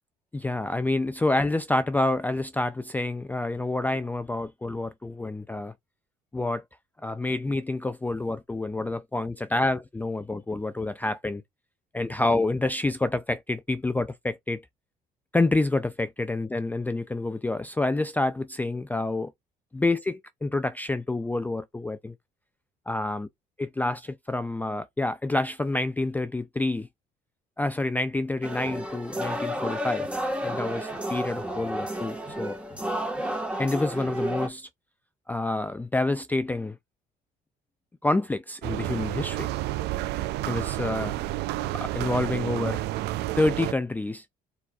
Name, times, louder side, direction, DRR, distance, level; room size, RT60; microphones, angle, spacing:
voice 1, 0.3-5.7 6.3-6.6 7.0-11.4 11.9-14.6 15.3-19.3 19.7-20.1 20.4-22.1 22.9-23.3 23.6-26.9 27.6-30.1 30.4-32.6 33.6-34.7 35.3-36.8 38.0-39.5 40.5-41.2 41.7-42.8 43.4-44.2, left 2 dB, 10° left, 0.4 m, -28 dB
sound 1, 28.4-34.5, equal, 5° right, 1.3 m, -31 dB
sound 2, 38.6-43.7, right 16 dB, 80° right, 0.4 m, -30 dB
4.6 x 4.1 x 2.3 m
cardioid pair, 110°, 17 cm